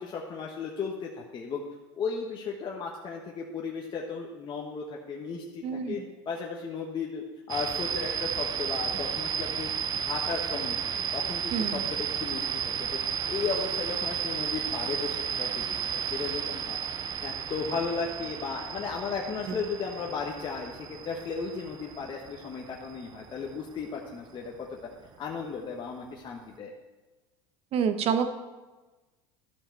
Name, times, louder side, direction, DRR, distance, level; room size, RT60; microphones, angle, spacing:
voice 1, 0.0-1.6 1.9-6.0 6.3-10.8 11.1-12.6 12.9-13.0 13.3-16.8 17.2-24.8 25.2-26.7, left 5 dB, 35° left, -1 dB, 1.1 m, -35 dB
voice 2, 5.6-6.0 11.5-11.8 27.7-28.3, right 7 dB, 45° right, 9 dB, 0.9 m, -27 dB
sound 1, 7.5-24.1, right 8 dB, 30° right, 0.4 m, -33 dB
12.5 x 5.6 x 4.4 m, 1.2 s
supercardioid pair, 105°, 14 cm